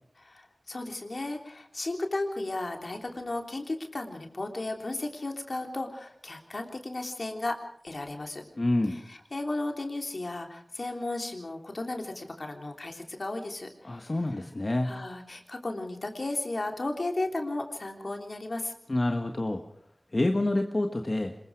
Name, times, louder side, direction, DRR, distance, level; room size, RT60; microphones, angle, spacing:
voice 1, 0.2-7.6 7.8-8.4 9.1-14.1 14.8-18.7, left 2 dB, 65° left, 3 dB, 3.3 m, -34 dB
voice 2, 8.6-9.0 13.8-14.9 18.9-19.6 20.1-21.3, left 1 dB, 45° left, 5 dB, 1.5 m, -27 dB
26.0 x 21.5 x 4.9 m, 0.63 s
wide cardioid pair, 55°, 0 cm